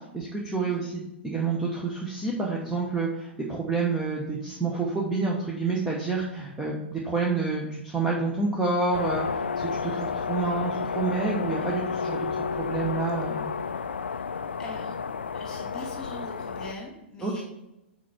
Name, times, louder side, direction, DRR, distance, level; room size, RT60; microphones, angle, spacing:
voice 1, 0.1-13.5 17.2-17.4, right 3 dB, 10° right, -3 dB, 0.9 m, -29 dB
sound 1, 8.9-16.7, left 5 dB, 70° left, 0.3 m, -31 dB
voice 2, 14.6-15.0 15.3-17.4, left 1 dB, 10° left, -2 dB, 2.3 m, -41 dB
6.3 x 4.6 x 4.3 m, 0.92 s
figure-of-eight pair, 105°, 6 cm